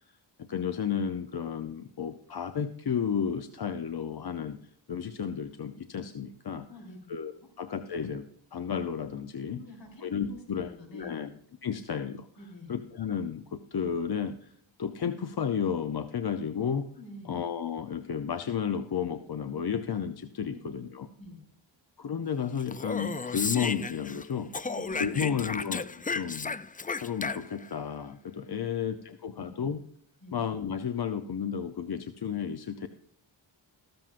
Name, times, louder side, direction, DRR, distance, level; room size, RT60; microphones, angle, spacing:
voice 1, 0.4-4.6 4.9-6.7 7.1-7.3 7.6-8.3 8.5-9.6 10.0-11.3 11.6-12.3 12.7-14.5 14.8-16.9 17.3-21.1 22.0-24.5 25.0-25.9 26.1-26.5 27.0-29.8 30.3-32.9, left 7 dB, 55° left, 9 dB, 0.7 m, -32 dB
voice 2, 6.7-7.5 9.5-11.3 12.4-12.7 16.5-16.7 17.0-17.4 20.4-20.8 21.2-21.4 24.6-25.5 28.6-29.8 30.2-30.4, left 2 dB, 70° left, 0 dB, 3.9 m, -48 dB
Speech, 22.6-24.2 24.5-27.7, left 4 dB, 20° left, 0.3 m, -34 dB
14.0 x 13.5 x 2.5 m, 0.64 s
wide cardioid pair, 95°, 47 cm